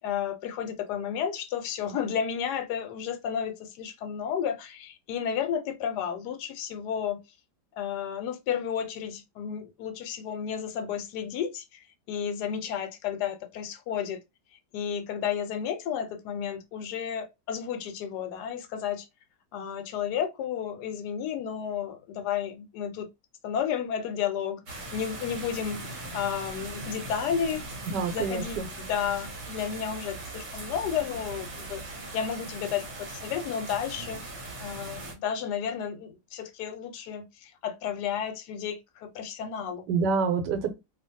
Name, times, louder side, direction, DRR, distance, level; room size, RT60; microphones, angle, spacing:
voice 1, 0.0-7.2 7.8-14.2 14.7-19.1 19.5-23.1 23.4-27.7 28.1-31.8 32.1-39.9, left 8 dB, 80° left, 1.1 m, -32 dB
sound 1, 24.7-35.1, right 2 dB, 50° right, 1.0 m, -40 dB
voice 2, 27.9-28.7 39.9-40.7, right 5 dB, 90° right, 1.3 m, -27 dB
2.8 x 2.4 x 2.6 m
omnidirectional pair, 1.8 m